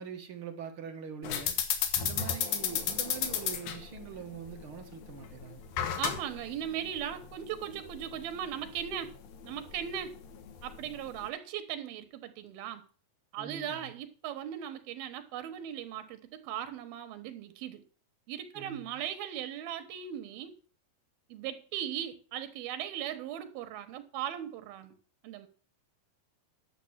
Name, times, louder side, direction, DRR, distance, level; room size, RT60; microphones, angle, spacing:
voice 1, 0.0-1.6 2.0-5.6 13.4-13.9 18.5-19.0, right 6 dB, 50° right, 4 dB, 1.7 m, -43 dB
sound 1, 1.2-11.3, left 8 dB, 80° left, 3.2 m, -35 dB
voice 2, 6.0-9.1 9.4-10.2 10.6-12.9 13.3-17.8 18.3-20.5 21.3-24.9 25.2-25.5, right 10 dB, 85° right, 9 dB, 3.1 m, -38 dB
10.5 x 7.0 x 7.3 m, 0.41 s
omnidirectional pair, 4.2 m